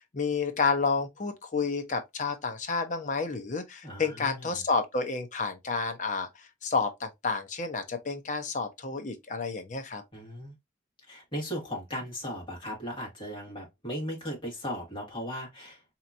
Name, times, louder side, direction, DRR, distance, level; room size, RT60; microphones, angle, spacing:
voice 1, 0.1-10.0, left 4 dB, 40° left, 0.6 m, -30 dB
voice 2, 3.8-4.6 10.1-10.5 11.1-15.8, equal, 25° left, 1.7 m, -37 dB
4.2 x 2.9 x 2.5 m
head